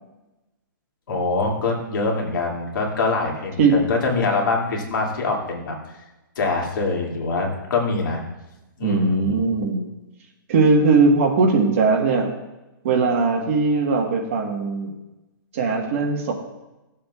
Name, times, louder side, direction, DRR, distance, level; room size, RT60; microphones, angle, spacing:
voice 1, 1.1-5.8 6.4-8.2 8.8-9.3, left 3 dB, 65° left, -1 dB, 2.4 m, -24 dB
voice 2, 8.8-9.9 10.5-12.3 12.8-14.9 15.5-16.3, right 4 dB, 35° right, 1 dB, 1.4 m, -19 dB
16.0 x 7.4 x 2.4 m, 1.0 s
hypercardioid pair, 170°, 12 cm